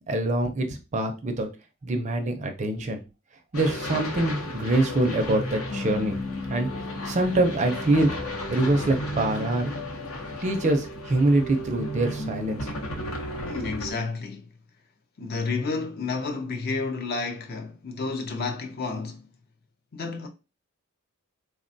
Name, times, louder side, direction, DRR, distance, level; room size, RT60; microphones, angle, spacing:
voice 1, 0.1-0.7 0.9-1.5 1.8-3.0 3.5-6.2 6.5-6.7 7.1-8.2 8.5-9.7 10.4-12.6, right 2 dB, 35° right, 0.4 m, -24 dB
sound 1, 3.5-13.9, left 1 dB, 75° left, 0.8 m, -33 dB
voice 2, 13.4-14.5 15.2-19.2 19.9-20.3, left 4 dB, 45° left, 0.5 m, -30 dB
3.3 x 2.2 x 2.6 m
head